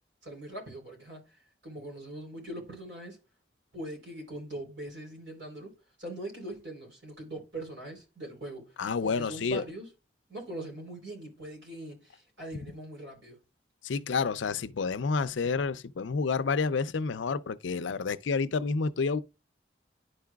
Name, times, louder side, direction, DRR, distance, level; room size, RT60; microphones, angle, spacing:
voice 1, 0.2-3.2 3.7-5.7 6.0-8.7 9.0-9.9 10.3-13.4, right 1 dB, 85° right, 3.6 m, -41 dB
voice 2, 8.8-9.6 13.8-19.2, left 4 dB, 85° left, 0.5 m, -29 dB
11.5 x 4.8 x 2.3 m
head